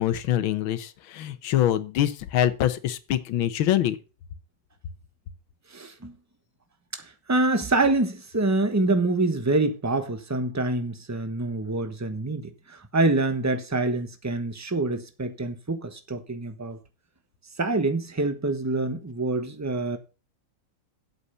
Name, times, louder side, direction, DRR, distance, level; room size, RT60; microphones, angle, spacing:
voice 1, 0.0-4.0, left 11 dB, 85° left, 1.7 m, -24 dB
voice 2, 5.7-6.1 6.9-16.8 17.6-20.0, right 2 dB, 15° right, 0.7 m, -26 dB
8.2 x 7.0 x 5.6 m
omnidirectional pair, 2.1 m